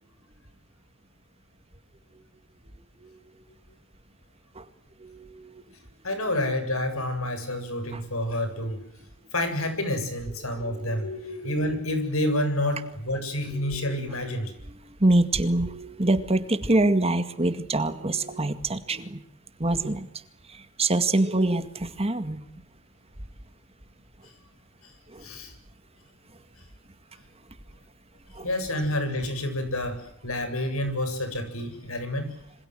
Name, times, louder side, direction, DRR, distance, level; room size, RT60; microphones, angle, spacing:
voice 1, 2.7-3.2 4.5-4.7 5.0-5.6 7.9-8.0 10.6-11.2 13.5-14.1 14.7-19.2 19.6-20.1 20.5-22.4 25.1-25.3 28.3-28.5, right 2 dB, 30° right, 9 dB, 2.0 m, -26 dB
voice 2, 6.0-8.8 9.3-14.5 25.2-25.5 28.4-30.0 30.2-32.4, left 1 dB, 80° left, 9 dB, 7.6 m, -28 dB
27.5 x 26.0 x 7.8 m, 0.72 s
head